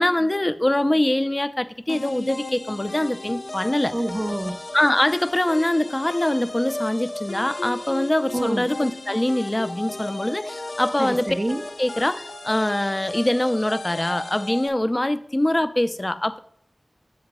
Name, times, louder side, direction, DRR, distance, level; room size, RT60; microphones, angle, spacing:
voice 1, 0.0-3.9 4.7-11.4 11.8-16.4, left 1 dB, 25° left, 0.4 m, -23 dB
sound 1, 1.9-14.7, left 2 dB, 75° left, 0.7 m, -35 dB
voice 2, 3.9-4.6 8.3-8.6 11.0-11.6, right 1 dB, 35° right, 0.5 m, -26 dB
7.5 x 3.8 x 5.9 m
wide cardioid pair, 55°, 0 cm